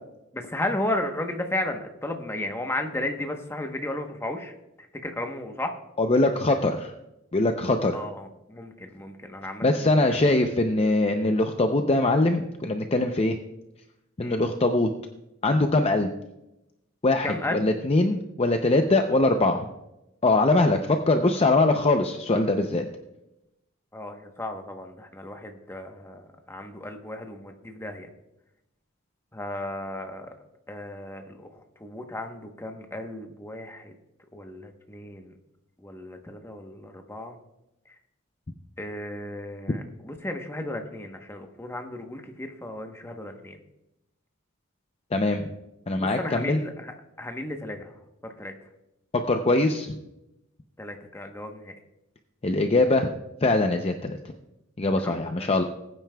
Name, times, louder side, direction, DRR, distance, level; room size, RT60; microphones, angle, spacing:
voice 1, 0.3-4.5 5.0-5.7 7.9-10.3 14.2-14.4 17.2-17.7 23.9-28.1 29.3-30.3 30.7-33.9 34.3-35.3 35.8-37.4 38.8-43.6 46.0-47.9 48.2-48.5 50.8-51.7 55.0-55.5, left 1 dB, 10° left, 4 dB, 1.0 m, -34 dB
voice 2, 6.0-6.9 7.3-8.0 9.6-13.4 14.2-14.9 15.4-16.1 17.0-19.7 20.2-22.9 45.1-45.5 45.9-46.6 49.3-50.0 52.4-53.1 53.4-54.2 54.8-55.6, left 2 dB, 30° left, 5 dB, 0.5 m, -22 dB
20.5 x 9.1 x 2.3 m, 0.91 s
head